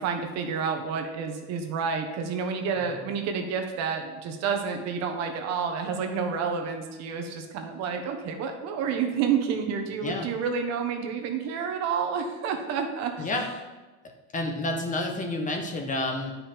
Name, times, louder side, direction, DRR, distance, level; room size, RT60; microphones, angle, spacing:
voice 1, 0.0-13.3, right 6 dB, 55° right, 4 dB, 1.3 m, -29 dB
voice 2, 14.3-16.4, left 2 dB, 25° left, 3 dB, 1.1 m, -29 dB
9.8 x 5.4 x 4.4 m, 1.2 s
cardioid pair, 130°, 31 cm